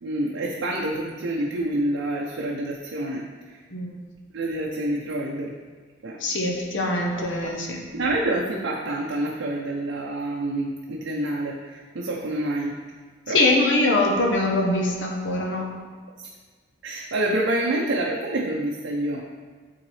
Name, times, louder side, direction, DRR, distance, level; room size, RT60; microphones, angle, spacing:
voice 1, 0.0-3.6 4.3-5.5 6.0-6.2 7.1-7.3 7.9-12.8 13.3-13.4 16.2-16.3 16.8-19.3, right 1 dB, 85° right, -2 dB, 0.6 m, -27 dB
voice 2, 6.2-7.8 13.3-15.7, left 2 dB, 70° left, 0 dB, 0.9 m, -23 dB
8.9 x 3.8 x 3.2 m, 1.5 s
head